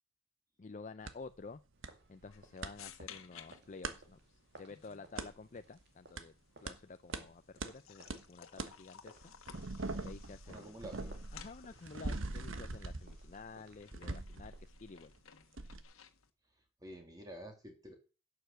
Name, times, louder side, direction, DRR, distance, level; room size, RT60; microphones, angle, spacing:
voice 1, 0.6-1.6 2.1-6.3 6.6-9.3 10.0-10.8 11.3-15.1, left 4 dB, 35° left, 0.5 m, -51 dB
sound 1, 1.1-1.2 1.8-1.9 2.2-2.7 3.8-4.0 5.2-5.3 6.2-6.3 6.7-6.8 7.1-7.2 7.6-7.7 8.1-8.2 8.6-8.7 9.2-15.2 15.6-15.8, right 2 dB, 70° right, 1.3 m, -42 dB
sound 2, 1.7-14.7, right 2 dB, 55° right, 2.3 m, -63 dB
sound 3, 2.3-16.3, left 8 dB, 90° left, 1.4 m, -58 dB
voice 2, 10.5-11.2 16.8-17.9, right 1 dB, 20° right, 2.9 m, -49 dB
11.5 x 6.6 x 7.9 m
head